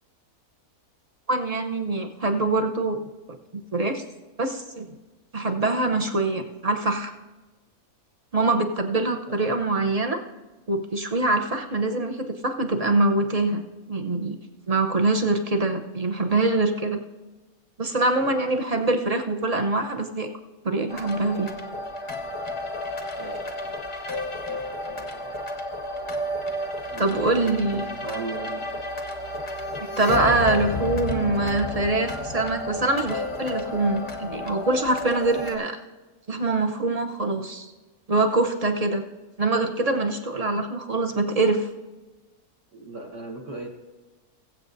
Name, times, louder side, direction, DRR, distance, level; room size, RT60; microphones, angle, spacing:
voice 1, 1.3-3.0 3.5-4.0 4.4-4.9 5.3-7.1 8.3-10.2 10.7-13.6 13.9-14.4 14.7-17.0 17.8-20.3 20.6-21.5 27.0-27.9 30.0-35.8 36.3-37.7 38.1-39.0 39.4-41.7, right 2 dB, 35° right, 4 dB, 0.6 m, -24 dB
sound 1, 20.9-35.6, left 1 dB, 35° left, 0.5 m, -32 dB
voice 2, 23.2-23.7 24.5-25.3 26.9-28.8 42.7-43.7, right 2 dB, 55° right, 0 dB, 1.7 m, -38 dB
21.5 x 7.9 x 2.6 m, 1.2 s
omnidirectional pair, 1.6 m